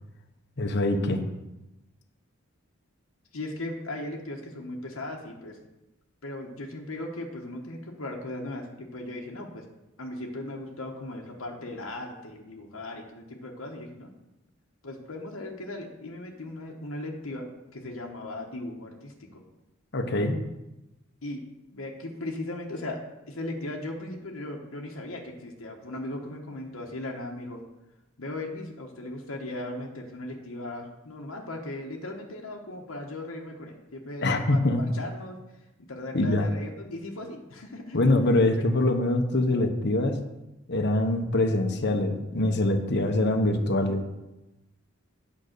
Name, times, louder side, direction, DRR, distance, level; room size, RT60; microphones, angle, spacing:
voice 1, 0.6-1.2 19.9-20.4 34.2-34.8 36.1-36.5 37.9-40.2 40.7-44.0, left 2 dB, 55° left, 5 dB, 1.0 m, -24 dB
voice 2, 3.3-5.6 6.2-9.6 10.0-14.1 14.8-17.5 17.7-19.4 21.2-21.4 21.7-23.0 23.3-27.6 28.2-35.4 35.9-38.0, left 1 dB, 90° left, 0 dB, 1.2 m, -37 dB
9.0 x 5.2 x 6.7 m, 0.96 s
head